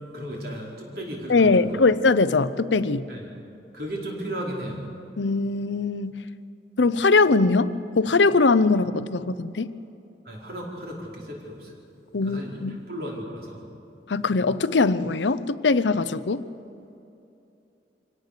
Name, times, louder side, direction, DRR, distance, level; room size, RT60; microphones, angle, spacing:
voice 1, 0.1-1.9 3.1-3.3 3.7-4.8 10.2-11.7 12.2-13.6, right 1 dB, 55° right, -2 dB, 4.6 m, -35 dB
voice 2, 1.3-3.1 5.2-6.1 6.8-9.7 12.1-12.8 14.1-16.4, left 3 dB, 85° left, 14 dB, 0.7 m, -21 dB
24.5 x 17.5 x 6.7 m, 2.8 s
head